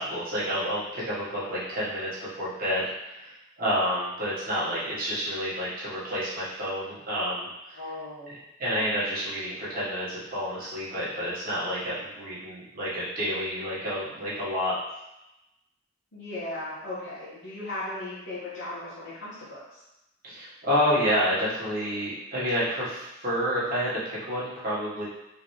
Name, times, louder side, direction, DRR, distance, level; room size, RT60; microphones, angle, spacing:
voice 1, 0.0-2.9 3.1-3.3 3.6-7.8 8.6-14.7 20.2-25.0, equal, 50° right, -9 dB, 1.5 m, -29 dB
voice 2, 7.7-8.3 16.1-19.8, left 2 dB, 75° left, -12 dB, 1.4 m, -37 dB
3.8 x 3.4 x 3.2 m, 0.93 s
head